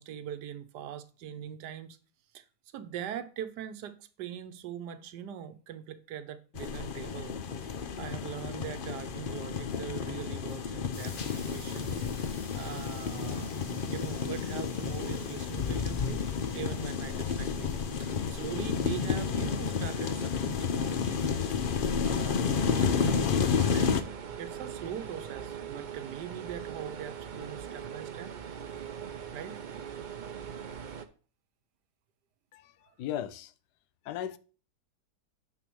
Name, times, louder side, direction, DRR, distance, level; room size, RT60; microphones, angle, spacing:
voice 1, 0.0-2.0 2.3-2.4 2.7-7.4 7.6-21.5 22.0-24.0 24.3-28.3 29.3-29.6, right 9 dB, 85° right, 1.3 m, -42 dB
sound 1, 6.5-24.0, left 6 dB, 50° left, 0.6 m, -31 dB
sound 2, 10.9-22.5, left 3 dB, 35° left, 1.5 m, -53 dB
sound 3, 23.6-31.1, right 8 dB, 70° right, 0.4 m, -41 dB
voice 2, 33.0-33.5 34.0-34.4, left 11 dB, 80° left, 1.2 m, -36 dB
9.1 x 4.3 x 6.1 m
omnidirectional pair, 1.7 m